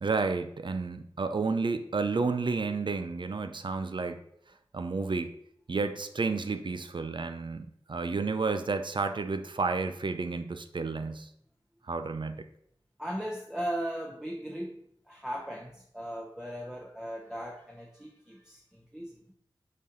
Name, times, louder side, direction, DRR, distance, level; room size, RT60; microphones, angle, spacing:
voice 1, 0.0-4.2 4.7-5.3 5.7-11.3 11.9-12.4, right 4 dB, 60° right, 9 dB, 0.6 m, -31 dB
voice 2, 13.0-19.3, equal, 5° right, 0 dB, 0.9 m, -38 dB
6.6 x 4.2 x 3.9 m, 0.67 s
cardioid pair, 45°, 9 cm